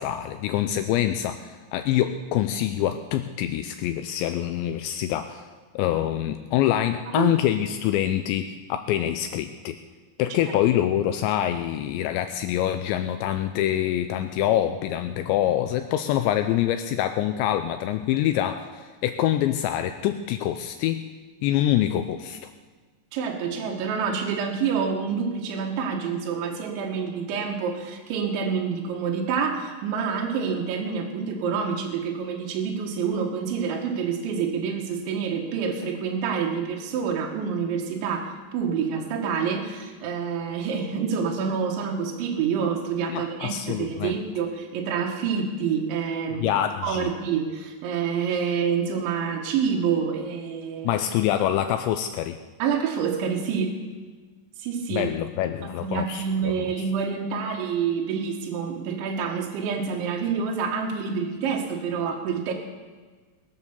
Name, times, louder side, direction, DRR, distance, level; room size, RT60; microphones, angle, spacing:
voice 1, 0.0-5.5 5.8-9.8 10.2-21.0 21.4-22.4 43.1-44.1 46.4-47.1 50.8-52.4 54.9-56.9, left 11 dB, 80° left, 8 dB, 2.8 m, -25 dB
voice 2, 23.1-50.9 52.6-53.7 54.6-55.1 55.6-62.5, right 6 dB, 80° right, 0 dB, 3.7 m, -27 dB
21.0 x 8.0 x 7.0 m, 1.4 s
omnidirectional pair, 5.3 m